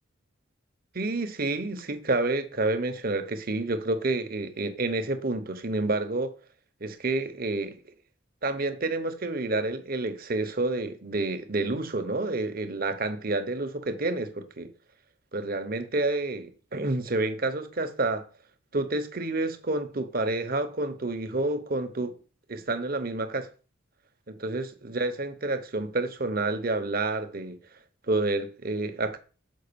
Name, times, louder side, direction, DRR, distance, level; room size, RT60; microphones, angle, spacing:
voice 1, 0.9-6.3 6.8-7.8 8.4-14.7 15.3-18.3 18.7-22.1 22.5-23.5 24.3-27.6 28.1-29.2, right 2 dB, 45° right, 1.0 m, -29 dB
6.4 x 5.1 x 6.9 m
head